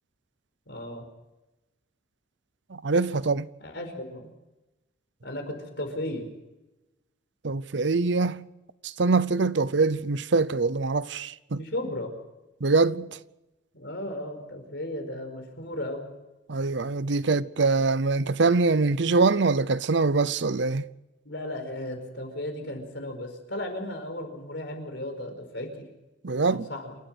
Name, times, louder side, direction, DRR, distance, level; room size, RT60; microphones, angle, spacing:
voice 1, 0.7-1.0 3.6-4.3 5.2-6.3 11.6-12.1 13.7-16.0 21.2-25.9 26.5-27.0, left 1 dB, 60° left, 4.9 m, -35 dB
voice 2, 2.7-3.5 7.4-8.4 8.8-11.6 12.6-13.1 16.5-20.8 26.2-26.6, right 3 dB, 65° right, 0.7 m, -24 dB
28.0 x 13.0 x 8.1 m
head